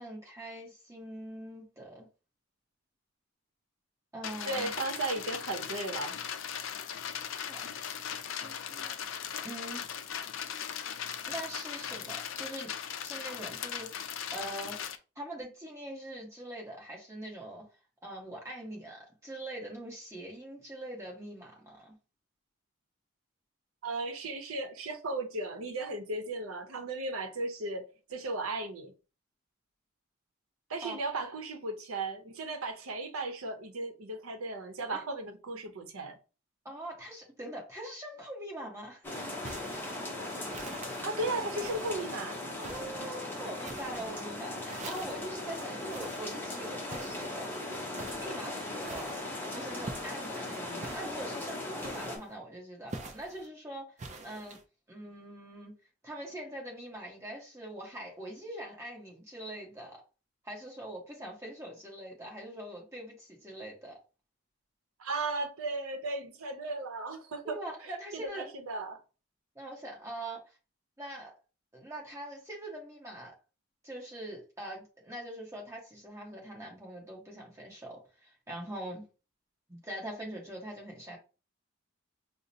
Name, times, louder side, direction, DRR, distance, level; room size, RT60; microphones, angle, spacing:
voice 1, 0.0-2.1 4.1-4.7 7.5-7.7 8.3-9.1 9.4-9.9 11.3-12.7 13.0-14.8 15.1-17.6 18.0-22.0 30.8-31.0 34.9-35.1 36.6-39.0 42.6-47.5 48.1-49.1 49.5-53.9 54.2-54.6 54.9-55.7 56.0-60.0 60.4-64.0 67.4-68.4 69.5-70.5 71.0-71.3 71.7-73.3 73.8-79.0 79.7-81.2, right 1 dB, 15° right, 1.1 m, -43 dB
sound 1, 4.2-15.0, left 8 dB, 70° left, 0.4 m, -38 dB
voice 2, 4.5-6.2 23.8-28.9 30.7-36.2 41.0-42.4 65.0-69.0, right 2 dB, 85° right, 0.7 m, -36 dB
sound 2, 39.0-52.2, left 2 dB, 10° left, 0.7 m, -38 dB
sound 3, 39.4-40.0 40.5-41.1 41.6-42.1 42.6-43.1 43.6-44.2 44.7-45.3 45.9-46.3 46.9-47.4 47.9-48.3 48.8-49.3 49.8-50.3 50.8-51.2 51.8-52.3 52.9-53.5 54.0-54.6, right 3 dB, 35° right, 0.4 m, -46 dB
4.9 x 2.0 x 2.7 m
head